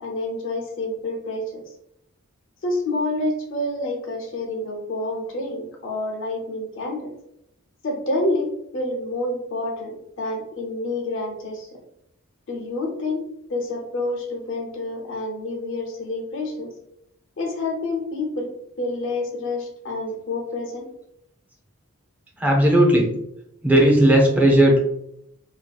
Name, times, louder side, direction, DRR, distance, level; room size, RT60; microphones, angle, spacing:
voice 1, 0.0-1.4 2.6-7.1 7.8-11.7 12.5-13.2 13.5-16.7 17.4-18.5 18.8-20.9, left 2 dB, 55° left, 0 dB, 0.6 m, -28 dB
voice 2, 22.4-23.1 23.6-24.8, right 1 dB, 5° right, -1 dB, 0.5 m, -15 dB
2.7 x 2.3 x 2.2 m, 0.77 s
head